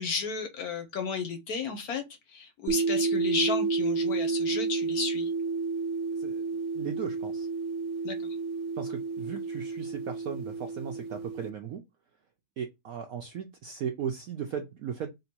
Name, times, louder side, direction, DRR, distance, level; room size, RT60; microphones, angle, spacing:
voice 1, 0.0-2.0 2.3-5.3 8.0-8.2, left 5 dB, 60° left, 1.1 m, -33 dB
sound 1, 2.7-11.5, right 4 dB, 85° right, 1.4 m, -30 dB
voice 2, 6.7-7.5 8.8-11.8 12.6-15.1, right 7 dB, 70° right, 0.8 m, -36 dB
3.7 x 2.7 x 4.3 m
omnidirectional pair, 2.1 m